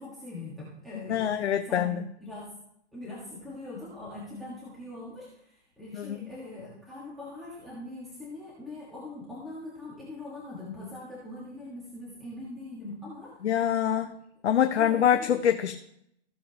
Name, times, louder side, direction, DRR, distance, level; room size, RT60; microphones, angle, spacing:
voice 1, 0.0-1.9 2.2-2.5 2.9-13.3 14.8-15.4, left 2 dB, ahead, -9 dB, 1.6 m, -42 dB
voice 2, 1.1-2.0 6.0-6.2 13.4-14.1 14.4-15.7, left 9 dB, 75° left, 7 dB, 0.8 m, -25 dB
15.5 x 7.2 x 2.9 m, 0.74 s
hypercardioid pair, 160°, 34 cm